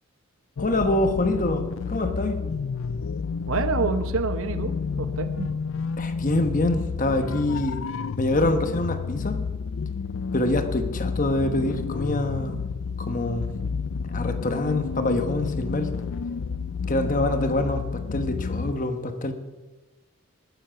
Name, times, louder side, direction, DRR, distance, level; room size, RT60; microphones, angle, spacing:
sound 1, 0.6-18.7, left 5 dB, 70° left, 0.4 m, -30 dB
voice 1, 0.6-2.4 6.0-7.8 8.2-9.4 10.3-12.6 13.0-13.5 14.0-15.9 16.9-19.3, left 2 dB, 40° left, 7 dB, 1.1 m, -25 dB
voice 2, 3.5-5.5, right 4 dB, 80° right, 10 dB, 0.9 m, -27 dB
19.5 x 7.6 x 5.8 m, 1.2 s
head